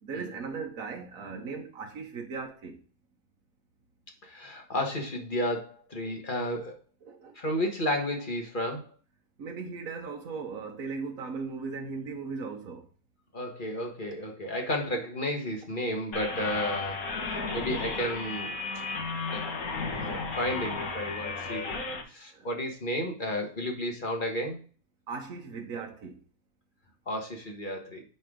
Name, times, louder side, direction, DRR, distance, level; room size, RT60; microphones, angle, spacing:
voice 1, 0.0-2.8 6.0-6.2 7.0-7.5 9.4-12.9 22.3-22.6 25.1-26.2, right 4 dB, 75° right, 1.5 m, -38 dB
voice 2, 4.2-6.7 7.3-8.9 13.3-17.1 17.5-18.5 19.3-19.4 19.9-21.8 22.1-24.6 27.1-28.0, left 1 dB, 35° left, 1.7 m, -32 dB
sound 1, 16.1-22.0, left 3 dB, 80° left, 2.1 m, -34 dB
9.6 x 4.3 x 3.8 m
omnidirectional pair, 1.5 m